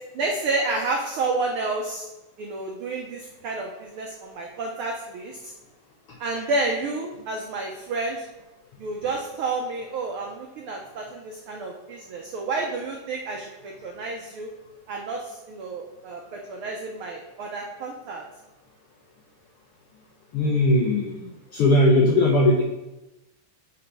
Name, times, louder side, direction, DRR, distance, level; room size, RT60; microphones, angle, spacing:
voice 1, 0.1-2.1 2.4-5.5 6.2-8.3 8.8-14.5 14.9-18.2, right 3 dB, 85° right, 1 dB, 1.2 m, -30 dB
voice 2, 20.3-21.3 21.5-22.6, left 1 dB, 75° left, -1 dB, 1.4 m, -19 dB
6.6 x 4.1 x 5.4 m, 1.0 s
omnidirectional pair, 3.4 m